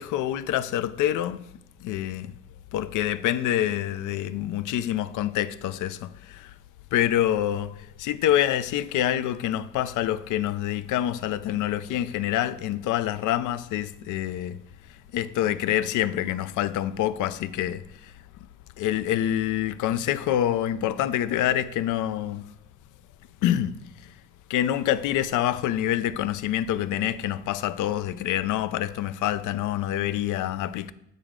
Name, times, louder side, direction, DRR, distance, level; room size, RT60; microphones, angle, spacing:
voice 1, 0.0-1.4 1.8-2.4 2.7-6.5 6.9-14.6 15.1-17.8 18.8-22.4 23.4-23.7 24.5-30.9, left 12 dB, 85° left, 0.5 m, -26 dB
7.9 x 6.7 x 3.7 m
cardioid pair, 90°, 30 cm